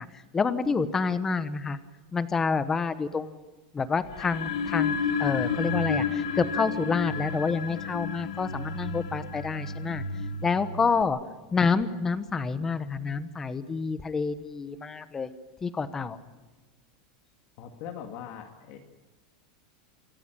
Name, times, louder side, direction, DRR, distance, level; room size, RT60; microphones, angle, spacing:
voice 1, 0.0-1.8 2.1-3.4 3.7-10.0 10.4-11.2 11.5-15.3 15.6-16.2, left 5 dB, 10° left, 13 dB, 1.1 m, -28 dB
sound 1, 4.1-11.0, left 5 dB, 80° left, 1.9 m, -31 dB
voice 2, 17.6-18.8, left 9 dB, 40° left, 4 dB, 2.1 m, -41 dB
27.0 x 14.0 x 9.0 m, 1.3 s
supercardioid pair, 165°, 3 cm